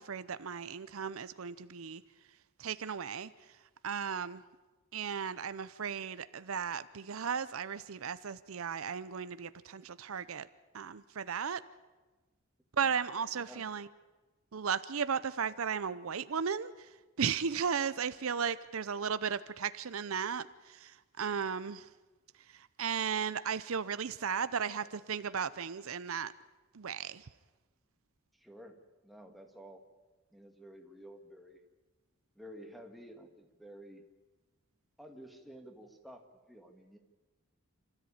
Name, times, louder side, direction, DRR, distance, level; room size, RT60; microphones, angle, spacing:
voice 1, 0.0-2.0 2.6-3.3 3.8-4.4 4.9-10.5 10.7-11.6 12.8-13.9 14.5-16.7 17.2-21.9 22.5-26.3 26.7-27.2, right 7 dB, 75° right, 14 dB, 0.6 m, -35 dB
voice 2, 13.3-13.7 28.3-29.8 30.3-31.6 32.4-34.0 35.0-37.0, equal, ahead, 2 dB, 1.9 m, -52 dB
29.0 x 13.5 x 8.7 m, 1.2 s
head